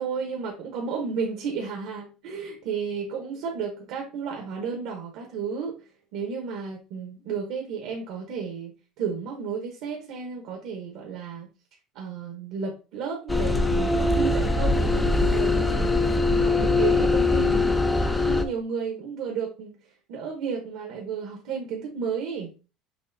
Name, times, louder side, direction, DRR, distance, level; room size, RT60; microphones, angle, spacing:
voice 1, 0.0-8.7 9.0-11.5 11.9-19.8 20.1-22.5, right 6 dB, 60° right, 1 dB, 1.0 m, -33 dB
sound 1, 13.3-18.4, left 2 dB, 5° left, 0.4 m, -22 dB
6.1 x 3.1 x 2.6 m, 0.33 s
cardioid pair, 175°, 0 cm